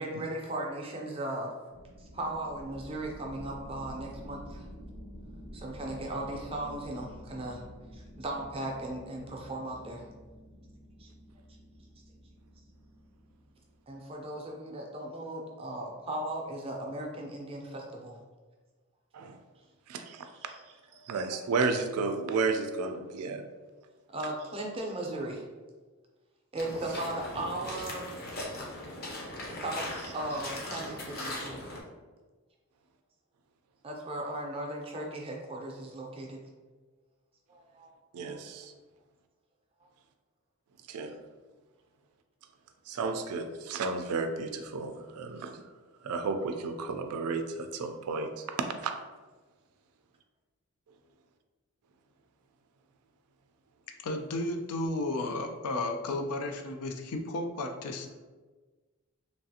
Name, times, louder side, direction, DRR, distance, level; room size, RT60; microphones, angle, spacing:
voice 1, 0.0-1.5 2.0-4.7 5.5-7.6 7.9-10.1 11.0-11.1 13.9-18.2 19.6-19.7 20.3-20.6 20.9-21.0 24.1-25.4 26.5-28.1 29.4-29.9 30.1-31.7 33.8-36.4 37.5-37.9, right 1 dB, 25° right, 0 dB, 0.4 m, -37 dB
sound 1, 1.7-14.0, equal, 70° left, 1.2 m, -49 dB
voice 2, 19.9-20.2 21.1-23.4 38.1-38.7 40.9-41.2 42.9-45.6 46.0-48.4 48.8-48.9, right 4 dB, 90° right, 7 dB, 0.3 m, -32 dB
sound 2, 26.6-31.8, left 1 dB, 45° left, 0.6 m, -39 dB
voice 3, 54.0-58.1, left 2 dB, 90° left, 5 dB, 0.4 m, -33 dB
3.2 x 2.4 x 2.7 m, 1.3 s
head